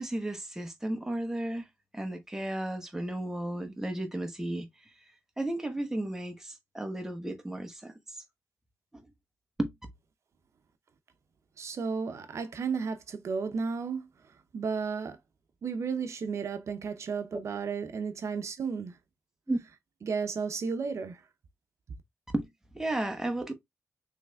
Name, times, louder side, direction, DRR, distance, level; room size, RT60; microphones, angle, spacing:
voice 1, 0.0-1.7 1.9-4.7 5.4-8.2 8.9-9.0 9.6-9.7 17.3-17.4 19.5-19.6 22.3-22.5 22.7-23.5, right 1 dB, 10° right, 1.0 m, -33 dB
voice 2, 11.6-14.1 14.5-15.2 15.6-19.0 20.0-21.2, right 5 dB, 70° right, 0.6 m, -33 dB
5.8 x 3.2 x 2.3 m
wide cardioid pair, 105°, 5 cm